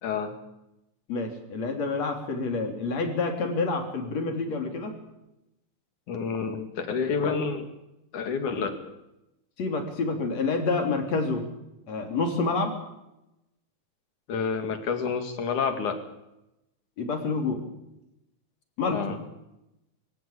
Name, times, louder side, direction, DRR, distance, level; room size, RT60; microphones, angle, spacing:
voice 1, 0.0-0.3 6.1-7.7 8.1-8.7 14.3-16.0 18.9-19.2, left 5 dB, 85° left, 7 dB, 4.0 m, -28 dB
voice 2, 1.1-4.9 9.6-11.4 11.9-12.7 17.0-17.6 18.8-19.2, left 3 dB, 60° left, 5 dB, 4.5 m, -28 dB
24.0 x 16.0 x 8.8 m, 0.90 s
omnidirectional pair, 3.4 m